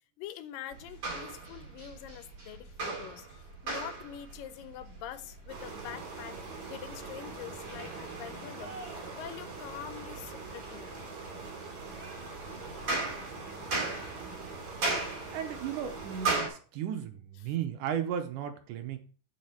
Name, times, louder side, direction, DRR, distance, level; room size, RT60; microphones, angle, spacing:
voice 1, 0.2-6.4 6.7-10.9 12.4-12.5 17.4-17.5, left 10 dB, 80° left, 2.4 m, -45 dB
sound 1, 0.7-16.5, right 3 dB, 35° right, 3.5 m, -39 dB
sound 2, 5.5-16.4, right 3 dB, 55° right, 4.3 m, -43 dB
voice 2, 15.3-19.0, right 9 dB, 75° right, 2.1 m, -35 dB
7.5 x 4.9 x 7.0 m
omnidirectional pair, 4.0 m